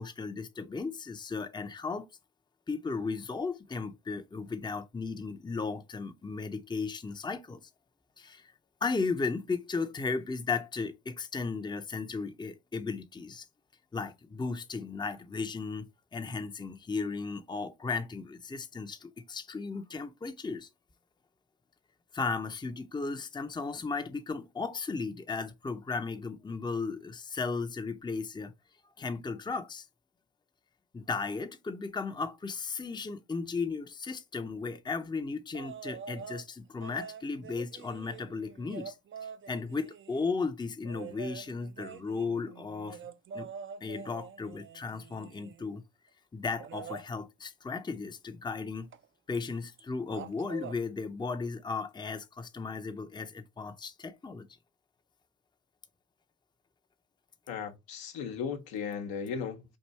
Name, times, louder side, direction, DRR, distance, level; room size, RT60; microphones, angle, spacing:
voice 1, 0.0-2.1 2.7-7.6 8.2-8.5 8.8-13.5 13.9-20.7 22.1-28.5 29.0-29.9 30.9-39.0 39.2-43.0 43.3-43.5 43.8-45.8 46.3-48.9 49.3-54.5, left 4 dB, 10° left, 0.6 m, -35 dB
sound 1, 35.5-36.4 36.8-40.3 40.8-45.7 46.6-47.1 48.9-49.0 49.3-49.8 50.1-50.8 52.2-52.3, right 7 dB, 35° right, 0.5 m, -45 dB
voice 2, 57.5-59.6, left 6 dB, 70° left, 1.0 m, -36 dB
4.7 x 2.6 x 4.1 m
hypercardioid pair, 55°, 37 cm